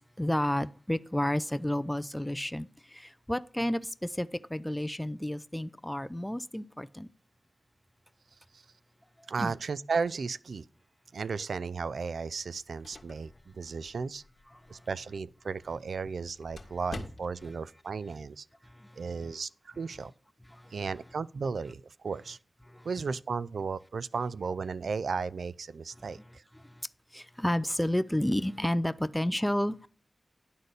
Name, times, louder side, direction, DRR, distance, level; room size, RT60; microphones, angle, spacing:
voice 1, 0.0-7.1 9.4-9.5 14.7-14.8 18.6-19.0 20.5-20.8 22.6-22.9 26.0-26.1 26.5-26.9 27.1-29.9, left 1 dB, 10° left, 0.5 m, -31 dB
voice 2, 9.3-10.6 11.1-14.2 14.7-18.4 19.0-20.1 20.7-22.4 22.8-26.4, right 5 dB, 85° right, 0.3 m, -34 dB
sound 1, 12.4-17.6, left 2 dB, 60° left, 1.7 m, -49 dB
11.0 x 4.1 x 6.6 m
cardioid pair, 50°, 0 cm